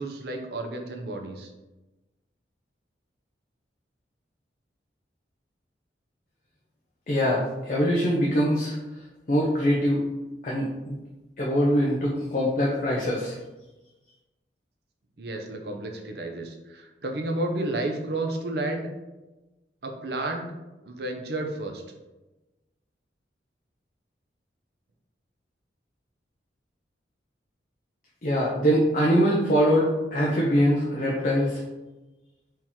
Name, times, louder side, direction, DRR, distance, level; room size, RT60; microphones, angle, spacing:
voice 1, 0.0-1.5 15.2-18.9 19.8-20.5 20.8-21.8, right 2 dB, 60° right, 3 dB, 0.6 m, -31 dB
voice 2, 7.1-8.8 9.3-10.0 10.4-10.9 11.4-13.4 28.2-31.6, equal, 45° left, -4 dB, 0.7 m, -23 dB
4.6 x 2.9 x 3.6 m, 1.1 s
head